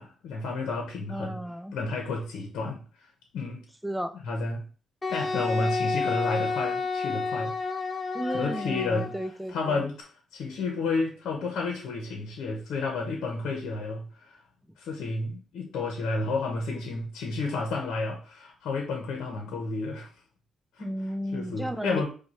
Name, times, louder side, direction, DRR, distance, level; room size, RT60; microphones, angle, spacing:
voice 1, 0.0-1.4 1.7-2.8 3.3-3.6 4.2-4.6 5.1-7.5 8.3-9.1 9.5-14.4 14.8-20.1 20.8-20.9 21.3-22.1, left 3 dB, 75° left, 1 dB, 0.9 m, -31 dB
voice 2, 1.1-1.7 3.8-4.2 8.1-9.8 20.8-22.1, equal, 5° right, 10 dB, 0.5 m, -33 dB
Wind instrument woodwind instrument, 5.0-9.3, left 4 dB, 20° left, 1.0 m, -30 dB
5.1 x 2.3 x 4.2 m, 0.39 s
cardioid pair, 90°, 0 cm